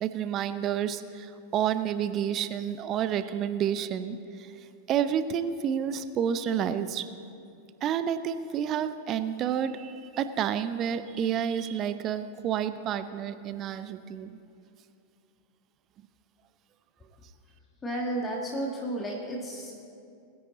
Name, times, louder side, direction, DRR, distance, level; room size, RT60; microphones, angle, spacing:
voice 1, 0.0-4.5 4.9-7.0 7.8-14.3, right 9 dB, 35° right, 12 dB, 0.6 m, -29 dB
voice 2, 17.8-19.8, right 1 dB, 15° left, -1 dB, 1.5 m, -32 dB
21.0 x 9.6 x 4.0 m, 2.5 s
figure-of-eight pair, 90°, 0 cm